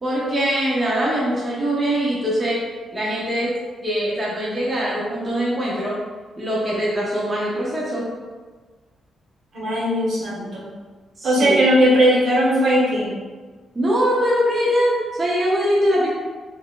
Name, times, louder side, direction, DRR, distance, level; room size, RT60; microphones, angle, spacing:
voice 1, 0.0-3.5 3.8-6.0 6.4-8.1 11.2-11.7 13.7-16.1, equal, 20° right, -6 dB, 0.6 m, -22 dB
voice 2, 9.5-10.7 11.2-13.1, equal, 65° right, -6 dB, 1.2 m, -18 dB
3.3 x 2.4 x 3.6 m, 1.4 s
wide cardioid pair, 170°, 0 cm